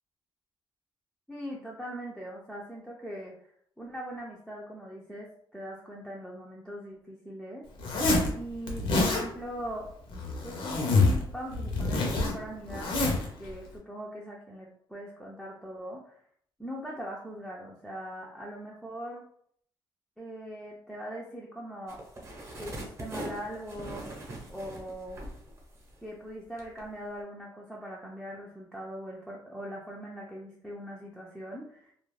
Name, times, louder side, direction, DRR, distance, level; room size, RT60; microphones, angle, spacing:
voice 1, 1.3-3.5 3.8-7.6 8.3-9.9 10.4-13.0 13.4-16.2 16.6-19.2 20.2-22.0 22.6-24.0 24.5-25.2 26.0-31.9, equal, ahead, -4 dB, 0.4 m, -41 dB
Zipper (clothing), 7.8-8.3 8.7-9.2 10.1-11.2 11.5-13.3, left 3 dB, 75° left, 0.6 m, -26 dB
sound 1, 21.9-26.2 26.6-26.8, right 1 dB, 30° right, 0.7 m, -41 dB
2.3 x 2.1 x 3.1 m, 0.65 s
cardioid pair, 140°, 9 cm